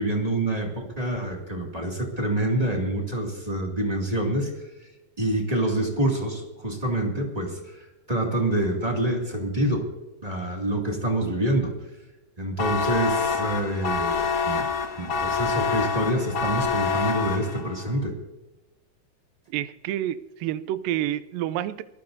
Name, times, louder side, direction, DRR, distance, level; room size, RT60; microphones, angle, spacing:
voice 1, 0.0-4.5 5.2-9.9 10.2-11.7 12.4-14.2 14.5-14.6 15.0-18.1, right 1 dB, 15° right, 0 dB, 1.6 m, -26 dB
sound 1, 12.6-17.8, left 6 dB, 45° left, 1.9 m, -26 dB
voice 2, 19.5-21.8, right 12 dB, 85° right, 13 dB, 2.3 m, -29 dB
23.0 x 15.0 x 2.6 m, 1.0 s
omnidirectional pair, 3.9 m